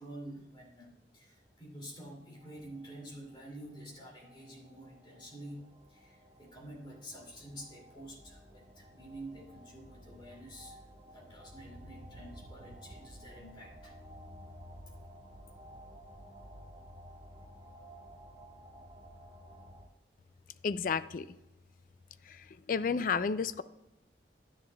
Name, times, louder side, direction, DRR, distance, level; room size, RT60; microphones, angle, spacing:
voice 1, 0.0-10.8 11.1-14.0, right 1 dB, 25° left, -2 dB, 2.5 m, -49 dB
sound 1, 0.9-19.9, equal, 30° right, 1.3 m, -55 dB
sound 2, 11.6-16.7, right 2 dB, 45° right, 0.6 m, -55 dB
voice 2, 20.6-21.3 22.3-23.6, left 5 dB, 50° left, 14 dB, 0.3 m, -32 dB
11.0 x 9.9 x 2.3 m, 0.96 s
head